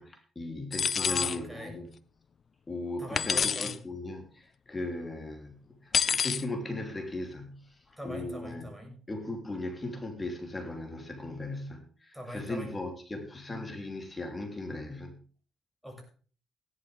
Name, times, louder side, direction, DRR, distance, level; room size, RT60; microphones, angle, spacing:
voice 1, 0.0-1.9 2.7-8.6 9.1-15.2, left 2 dB, 20° left, 5 dB, 3.1 m, -38 dB
sound 1, 0.7-1.4 3.1-3.8 5.9-6.4, left 6 dB, 50° left, 0.7 m, -27 dB
voice 2, 0.9-1.7 3.0-3.8 8.0-9.0 12.1-12.7 15.8-16.0, equal, 5° right, 2 dB, 6.6 m, -41 dB
16.5 x 11.5 x 3.5 m, 0.40 s
cardioid pair, 90°, 0 cm